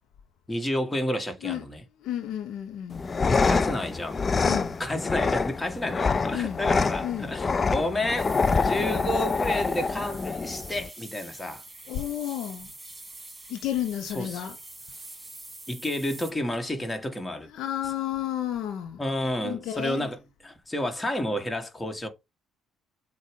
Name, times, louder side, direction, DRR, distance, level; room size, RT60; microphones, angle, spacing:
voice 1, 0.5-1.8 3.3-4.2 4.8-11.6 14.1-14.5 15.7-17.5 19.0-22.1, left 1 dB, 15° left, 1.7 m, -31 dB
voice 2, 2.0-3.0 4.4-4.8 6.3-6.6 7.0-7.3 11.9-12.7 13.5-14.6 17.5-19.0 19.4-20.1, left 11 dB, 65° left, 0.8 m, -31 dB
sound 1, 2.9-10.9, left 4 dB, 35° left, 0.5 m, -26 dB
sound 2, 8.2-16.3, right 2 dB, 20° right, 2.9 m, -45 dB
7.3 x 2.5 x 5.1 m
hypercardioid pair, 50°, 0 cm